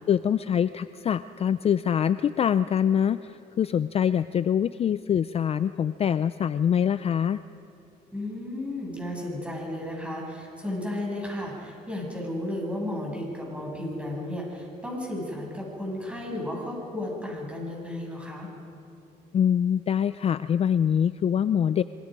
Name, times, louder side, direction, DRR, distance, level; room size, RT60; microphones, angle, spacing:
voice 1, 0.1-7.4 19.3-21.8, left 8 dB, 35° left, 14 dB, 0.5 m, -24 dB
voice 2, 8.1-18.5, left 1 dB, 5° right, -2 dB, 7.7 m, -33 dB
27.0 x 24.0 x 5.3 m, 2.7 s
cardioid pair, 110°, 17 cm